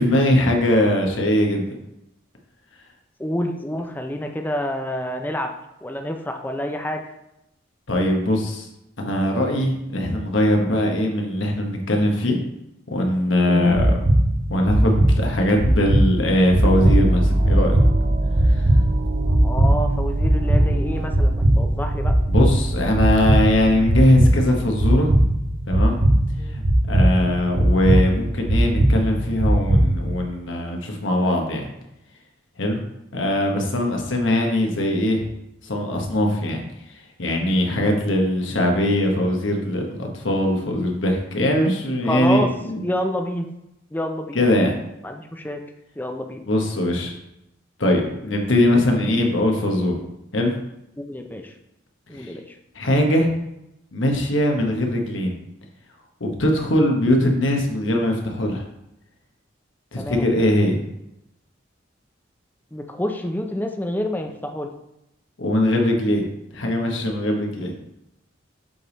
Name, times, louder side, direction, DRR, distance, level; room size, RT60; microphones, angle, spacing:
voice 1, 0.0-1.7 7.9-8.7 9.0-12.4 12.9-13.9 14.5-17.8 22.3-25.1 25.7-26.0 26.5-31.7 32.6-32.8 33.1-35.3 35.6-36.6 37.2-42.8 44.3-44.7 46.4-47.1 47.8-50.0 50.3-50.5 52.2-52.3 52.7-53.3 53.9-55.3 56.2-58.6 59.9-60.8 65.4-66.2 66.5-67.7, left 1 dB, 80° left, 2 dB, 1.2 m, -21 dB
voice 2, 3.2-5.5 5.8-7.0 13.5-13.8 19.3-22.1 26.4-26.5 37.8-38.0 42.0-42.5 42.8-43.5 43.9-44.4 45.0-45.6 46.0-46.4 48.7-48.8 51.0-51.5 52.1-52.6 60.0-60.3 62.7-64.7, left 1 dB, 10° left, 4 dB, 0.5 m, -28 dB
sound 1, 13.6-30.2, right 1 dB, 80° right, 1.0 m, -19 dB
sound 2, 16.6-23.9, right 1 dB, 45° right, 0.6 m, -25 dB
7.5 x 3.5 x 4.0 m, 0.86 s
head